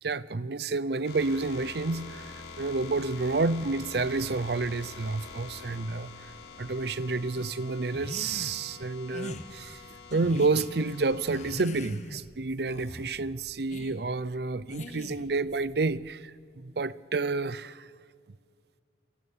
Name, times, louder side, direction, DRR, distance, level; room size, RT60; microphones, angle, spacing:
voice 1, 0.0-6.3 6.6-9.8 10.1-17.9, right 3 dB, 60° right, 0.6 m, -30 dB
sound 1, 1.0-11.5, left 5 dB, 80° left, 5.6 m, -46 dB
sound 2, 3.5-16.1, equal, 15° right, 1.7 m, -59 dB
sound 3, 7.9-8.6 9.1-9.4 10.1-10.7 11.3-12.3 12.7-13.1 13.7-14.0 14.7-15.3, left 1 dB, 40° left, 1.4 m, -41 dB
28.5 x 17.5 x 8.7 m
head